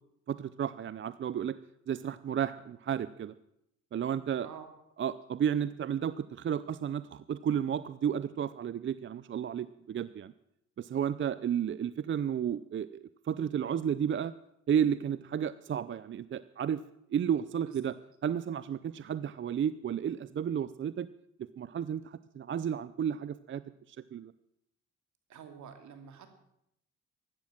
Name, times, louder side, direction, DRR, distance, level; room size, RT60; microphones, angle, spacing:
voice 1, 0.3-1.5 1.9-3.3 3.9-4.5 5.0-10.3 10.8-13.0 13.2-14.3 14.7-16.8 17.1-17.9 18.2-21.1 21.6-23.6 23.9-24.3, right 8 dB, 40° right, 16 dB, 0.5 m, -32 dB
voice 2, 25.3-26.3, right 7 dB, 70° right, 7 dB, 2.7 m, -48 dB
15.0 x 12.0 x 7.3 m, 0.79 s
cardioid pair, 90°, 30 cm